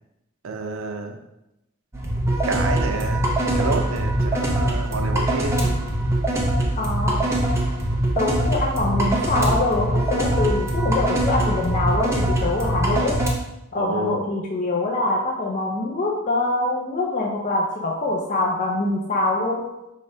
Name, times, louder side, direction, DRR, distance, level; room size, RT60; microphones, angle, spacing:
voice 1, 0.4-1.2 2.4-3.3 3.5-5.7 13.8-14.2, right 3 dB, 85° right, 4 dB, 0.5 m, -29 dB
sound 1, 1.9-13.3, right 1 dB, 15° right, 0.6 m, -22 dB
voice 2, 6.8-7.3 8.1-13.2 13.7-19.6, left 2 dB, 40° left, -2 dB, 0.5 m, -24 dB
4.7 x 3.2 x 2.7 m, 0.90 s
head